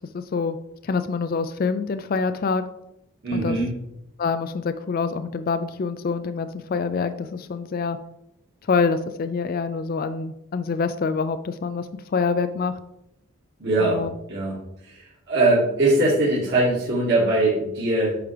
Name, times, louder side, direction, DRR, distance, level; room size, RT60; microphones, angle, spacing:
voice 1, 0.1-0.6 0.8-2.6 3.3-3.6 4.2-8.0 8.7-12.8 13.8-14.1, left 5 dB, 40° left, 10 dB, 0.3 m, -26 dB
voice 2, 3.2-3.7 13.6-14.0 14.3-14.6 14.8-15.0 15.3-18.2, right 2 dB, 55° right, -7 dB, 1.8 m, -21 dB
8.6 x 5.8 x 3.3 m, 0.84 s
head